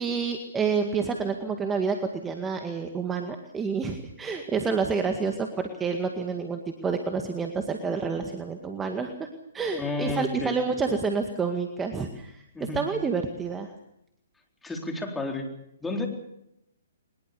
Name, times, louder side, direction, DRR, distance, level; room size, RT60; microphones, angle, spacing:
voice 1, 0.0-9.3 9.5-13.7, right 5 dB, 15° right, 5 dB, 2.0 m, -29 dB
voice 2, 9.8-10.6 12.5-12.8 14.6-15.5 15.8-16.1, left 2 dB, 5° left, 2 dB, 4.1 m, -31 dB
23.0 x 21.0 x 7.0 m, 0.79 s
hypercardioid pair, 130°, 0 cm